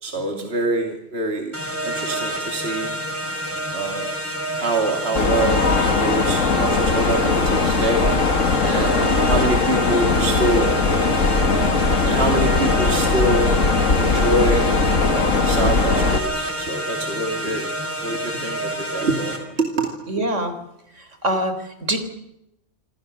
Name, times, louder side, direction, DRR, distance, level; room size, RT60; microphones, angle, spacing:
voice 1, 0.0-1.5 1.8-2.9 3.7-4.1 4.6-5.7 6.0-8.1 8.6-10.7 12.0-13.5 13.9-14.7 15.1-17.7 18.0-19.9, right 2 dB, 55° right, 2 dB, 2.9 m, -25 dB
sound 1, 1.5-19.4, right 1 dB, 10° right, 4.9 m, -28 dB
Mechanisms, 5.2-16.2, left 4 dB, 85° left, 2.3 m, -19 dB
voice 2, 8.8-9.2 20.1-20.5 21.0-22.0, right 1 dB, 70° right, 9 dB, 4.0 m, -25 dB
27.0 x 26.5 x 6.7 m, 0.85 s
omnidirectional pair, 1.3 m